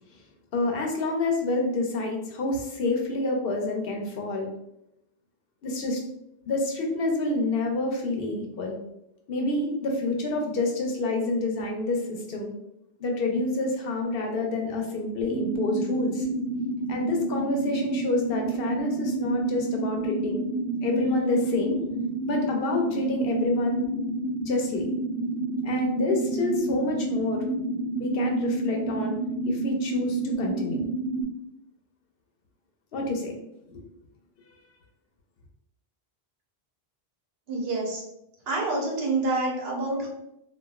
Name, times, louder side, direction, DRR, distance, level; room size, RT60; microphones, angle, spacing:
voice 1, 0.5-4.5 5.6-6.0 6.5-8.8 9.3-12.5 13.0-16.3 16.9-20.4 20.8-21.8 22.3-23.8 24.5-24.9 25.6-27.4 28.0-29.2 29.4-30.9 32.9-33.4 33.7-33.8, left 2 dB, 70° left, 1 dB, 0.8 m, -28 dB
sound 1, 15.2-31.2, right 2 dB, 60° right, 1.2 m, -30 dB
voice 2, 37.5-38.0 38.5-40.1, right 2 dB, 80° right, -2 dB, 1.0 m, -27 dB
3.0 x 2.2 x 2.3 m, 0.83 s
omnidirectional pair, 1.0 m